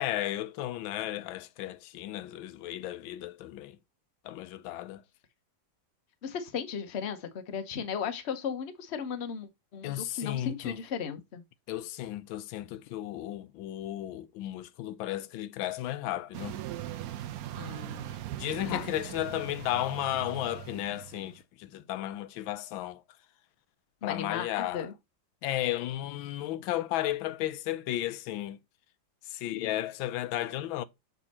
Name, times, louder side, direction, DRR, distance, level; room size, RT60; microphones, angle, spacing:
voice 1, 0.0-3.8 4.2-5.0 9.8-10.8 11.7-16.6 18.4-23.0 24.0-24.9 25.4-28.6 29.2-30.8, left 14 dB, 90° left, 1.4 m, -34 dB
voice 2, 6.2-11.4 17.6-18.2 18.6-18.9 24.0-24.9, left 7 dB, 50° left, 0.8 m, -36 dB
sound 1, 16.3-21.4, right 13 dB, 80° right, 0.8 m, -40 dB
6.8 x 3.5 x 4.1 m
omnidirectional pair, 2.1 m